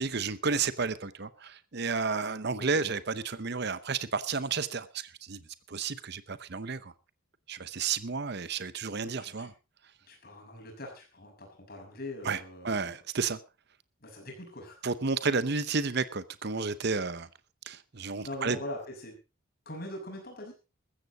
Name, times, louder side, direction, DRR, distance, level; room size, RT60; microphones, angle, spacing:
voice 1, 0.0-5.4 5.7-6.9 7.5-9.5 12.2-13.4 14.8-17.3 17.6-18.6, right 4 dB, 50° right, 0.8 m, -32 dB
voice 2, 9.0-9.5 10.1-12.9 14.0-14.8 18.2-19.2 19.7-20.5, left 1 dB, 45° left, 6.3 m, -42 dB
14.5 x 14.0 x 4.1 m
head